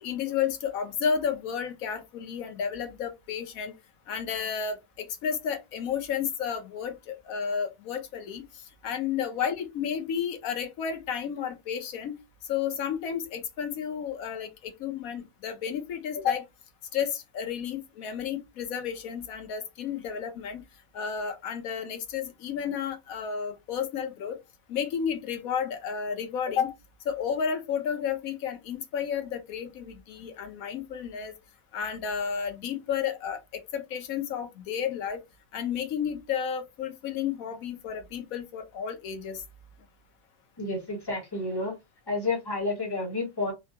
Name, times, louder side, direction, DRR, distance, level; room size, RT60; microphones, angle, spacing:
voice 1, 0.0-3.7 4.1-8.4 8.8-12.2 12.5-16.4 16.9-20.6 20.9-24.4 24.7-26.7 27.1-31.3 31.7-33.4 33.7-35.2 35.5-39.4, left 7 dB, 85° left, 1.2 m, -32 dB
voice 2, 40.6-41.8 42.1-43.5, left 2 dB, 20° left, 1.1 m, -30 dB
3.4 x 2.2 x 2.7 m
omnidirectional pair, 1.4 m